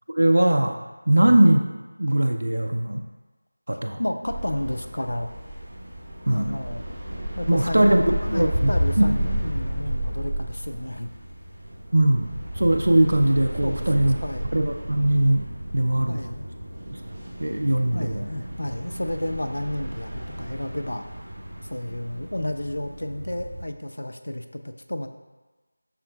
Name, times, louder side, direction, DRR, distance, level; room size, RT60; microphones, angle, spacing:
voice 1, 0.2-0.8 1.1-1.6 2.0-3.0 3.7-4.0 6.3-6.6 7.5-8.7 9.0-9.1 11.9-14.2 14.5-15.4 15.7-16.2 16.9-17.0 17.4-18.3, right 1 dB, 75° right, 4 dB, 0.4 m, -20 dB
voice 2, 4.0-5.3 6.3-6.8 7.3-11.1 13.6-14.5 16.1-16.5 17.9-21.1 21.7-25.1, left 1 dB, 85° left, 6 dB, 0.4 m, -31 dB
sound 1, 4.2-23.6, equal, 35° right, 0.9 m, -32 dB
5.6 x 3.7 x 2.2 m, 1.2 s
figure-of-eight pair, 175°, 0 cm